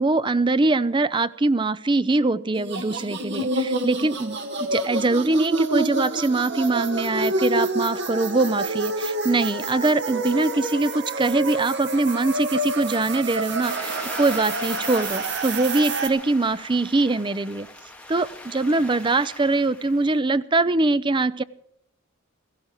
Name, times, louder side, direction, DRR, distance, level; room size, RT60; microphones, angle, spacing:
voice 1, 0.0-17.7 18.1-21.4, right 2 dB, 25° right, 15 dB, 0.5 m, -23 dB
sound 1, 2.5-16.1, right 2 dB, 55° right, 1.8 m, -28 dB
sound 2, 13.6-20.2, left 1 dB, 5° left, 2.1 m, -40 dB
17.0 x 15.5 x 4.6 m, 0.80 s
head